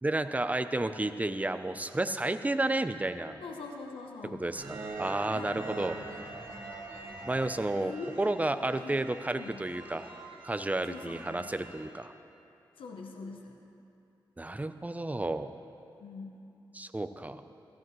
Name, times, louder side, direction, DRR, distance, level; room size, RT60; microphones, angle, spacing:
voice 1, 0.0-3.4 4.4-6.0 7.3-7.9 8.2-10.1 10.4-12.1 14.4-15.5 16.7-17.4, right 2 dB, 15° right, 10 dB, 0.6 m, -31 dB
voice 2, 3.4-4.4 5.3-5.6 7.8-8.5 8.8-9.0 9.3-9.5 10.9-11.4 12.8-13.6 16.0-16.3, left 4 dB, 90° left, 2 dB, 0.9 m, -43 dB
sound 1, 4.5-11.9, right 3 dB, 70° right, 1.9 m, -44 dB
15.5 x 14.0 x 3.2 m, 2.7 s
cardioid pair, 55°, 9 cm